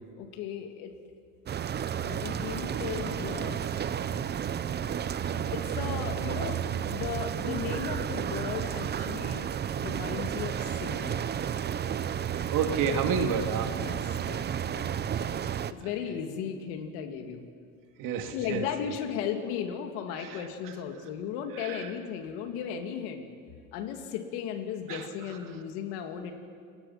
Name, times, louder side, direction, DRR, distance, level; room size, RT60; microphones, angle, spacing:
voice 1, 0.2-1.0 2.0-3.7 5.5-9.5 9.7-11.2 13.8-14.4 14.7-14.9 15.7-17.4 18.3-23.3 23.7-26.3, left 8 dB, 85° left, 4 dB, 2.8 m, -36 dB
sound 1, 1.5-15.7, right 9 dB, 30° right, 0.7 m, -32 dB
voice 2, 12.2-13.8 14.1-14.4 15.8-15.9 18.0-18.7 20.1-20.7 21.5-21.9 24.9-25.4, right 6 dB, 60° right, 5 dB, 2.5 m, -32 dB
29.5 x 20.5 x 5.9 m, 2.1 s
cardioid pair, 120°, 36 cm